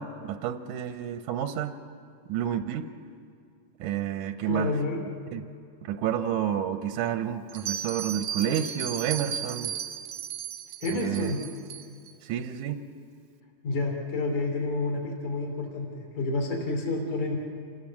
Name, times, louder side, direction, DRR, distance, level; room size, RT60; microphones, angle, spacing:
voice 1, 0.0-1.7 2.3-2.9 3.8-4.7 5.3-5.4 5.9-9.7 10.9-11.3 12.2-12.8, right 9 dB, 85° right, 9 dB, 2.2 m, -30 dB
voice 2, 4.4-5.0 10.8-11.4 13.6-17.4, left 2 dB, 70° left, 1 dB, 4.1 m, -29 dB
Bell, 7.5-12.1, right 8 dB, 70° right, 1.4 m, -35 dB
28.0 x 18.0 x 7.3 m, 2.3 s
omnidirectional pair, 3.5 m